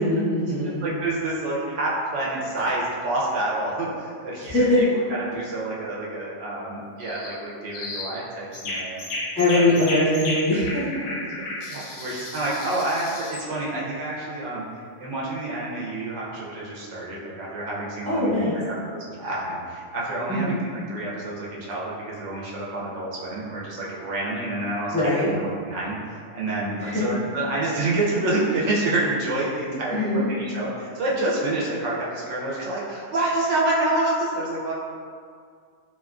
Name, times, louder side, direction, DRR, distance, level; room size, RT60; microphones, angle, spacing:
voice 1, 0.0-0.8 4.4-4.8 9.4-10.8 12.0-12.2 18.1-18.5 20.3-20.6 24.9-25.3 26.8-27.0 29.9-30.2, left 1 dB, 10° left, -11 dB, 0.5 m, -22 dB
voice 2, 0.6-9.0 9.5-9.6 11.7-14.6 15.0-18.7 19.2-34.7, right 2 dB, 80° right, -5 dB, 0.9 m, -28 dB
sound 1, 7.0-7.3 7.7-8.1 8.5-13.5, left 2 dB, 90° left, 0.9 m, -33 dB
2.7 x 2.3 x 2.4 m, 2.2 s
omnidirectional pair, 1.2 m